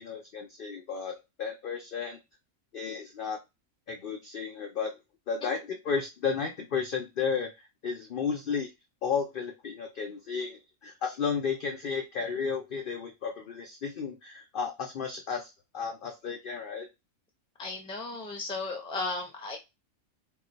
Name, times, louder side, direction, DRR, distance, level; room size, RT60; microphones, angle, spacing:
voice 1, 0.0-2.2 2.7-3.4 3.9-5.0 5.3-8.7 9.0-16.9, left 6 dB, 75° left, 4 dB, 0.5 m, -33 dB
voice 2, 17.6-19.6, left 3 dB, 10° left, 2 dB, 0.4 m, -35 dB
2.4 x 2.3 x 3.8 m, 0.22 s
omnidirectional pair, 1.5 m